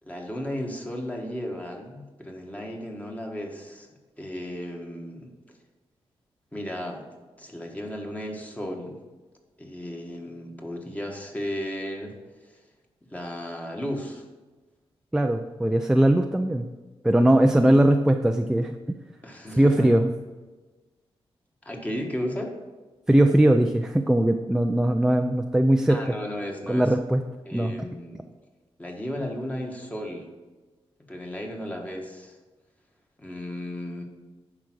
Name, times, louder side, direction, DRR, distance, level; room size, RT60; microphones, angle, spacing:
voice 1, 0.0-3.9 4.2-5.3 6.5-7.0 7.4-9.0 9.6-12.1 12.4-12.6 13.1-14.3 19.2-19.9 21.6-22.6 25.9-26.9 27.4-28.2 28.8-30.3 31.1-32.4 33.2-34.0, equal, 15° left, 1 dB, 1.5 m, -34 dB
voice 2, 15.1-16.7 17.0-18.7 19.5-20.1 23.1-26.1 26.7-27.2 27.5-27.9, right 1 dB, 5° right, 6 dB, 0.4 m, -20 dB
10.5 x 4.8 x 6.2 m, 1.2 s
wide cardioid pair, 120°, 10 cm